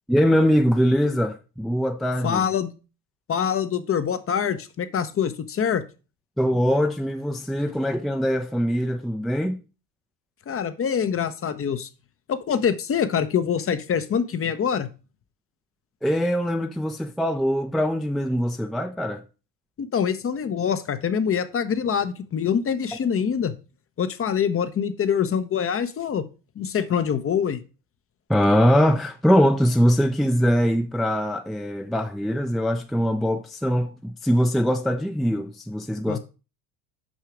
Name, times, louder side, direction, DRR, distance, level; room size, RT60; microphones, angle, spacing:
voice 1, 0.1-2.4 6.4-9.6 16.0-19.2 28.3-36.2, equal, ahead, 0.6 m, -22 dB
voice 2, 2.2-2.8 3.3-5.8 10.5-11.9 12.3-14.9 19.8-23.5 24.0-26.3 26.6-27.6 36.1-36.2, left 7 dB, 30° left, 0.8 m, -25 dB
6.3 x 5.6 x 5.0 m
hypercardioid pair, 70°, 48 cm